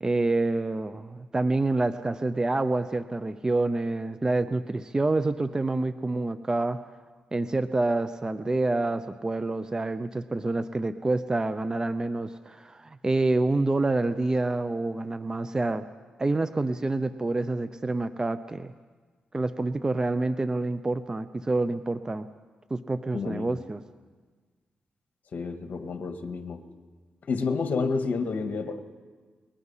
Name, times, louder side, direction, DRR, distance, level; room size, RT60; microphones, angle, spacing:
voice 1, 0.0-6.8 7.3-15.9 16.2-18.7 19.3-22.3 22.7-23.8, right 2 dB, 25° right, 11 dB, 0.8 m, -27 dB
voice 2, 23.1-23.5 25.3-26.6 27.3-28.8, left 4 dB, 60° left, 6 dB, 1.8 m, -29 dB
29.0 x 21.0 x 5.7 m, 1.5 s
cardioid pair, 85°, 3 cm